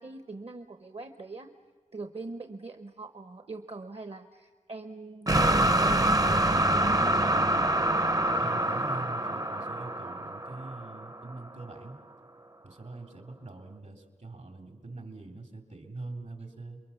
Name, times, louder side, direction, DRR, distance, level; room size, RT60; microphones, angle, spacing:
voice 1, 0.0-1.5 1.9-7.5, right 3 dB, 55° right, 8 dB, 1.0 m, -42 dB
sound 1, 5.3-11.3, right 1 dB, 30° right, 0.7 m, -26 dB
voice 2, 8.4-12.0 12.6-16.8, right 3 dB, 75° right, 5 dB, 3.1 m, -43 dB
28.5 x 22.5 x 7.1 m, 1.5 s
wide cardioid pair, 75°, 12 cm